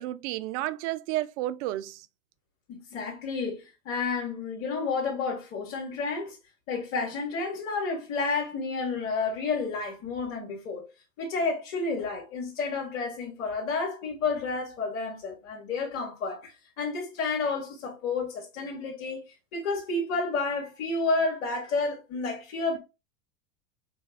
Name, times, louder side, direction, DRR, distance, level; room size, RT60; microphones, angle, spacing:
voice 1, 0.0-2.0, right 15 dB, 60° right, 0.5 m, -31 dB
voice 2, 2.7-6.4 6.7-10.8 11.2-19.2 19.5-22.8, left 4 dB, 70° left, 2.3 m, -30 dB
6.7 x 2.3 x 2.3 m
hypercardioid pair, 100°, 40 cm